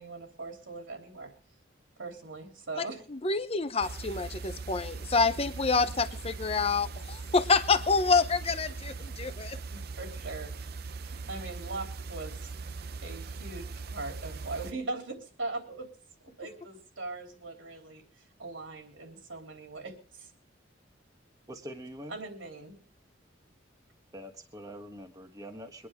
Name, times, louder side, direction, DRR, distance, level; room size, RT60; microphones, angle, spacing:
voice 1, 0.0-1.3 2.0-3.0 9.7-10.7 11.0-12.5 13.0-15.9 16.2-18.0 18.4-20.3 22.1-22.8, right 3 dB, 85° right, 3 dB, 3.4 m, -40 dB
voice 2, 3.1-9.6, left 4 dB, 30° left, 9 dB, 0.8 m, -27 dB
sound 1, 3.8-14.7, right 4 dB, 55° right, 0.6 m, -40 dB
voice 3, 21.5-22.2 24.1-25.9, equal, 20° right, 3 dB, 1.3 m, -44 dB
23.5 x 10.0 x 3.6 m, 0.42 s
head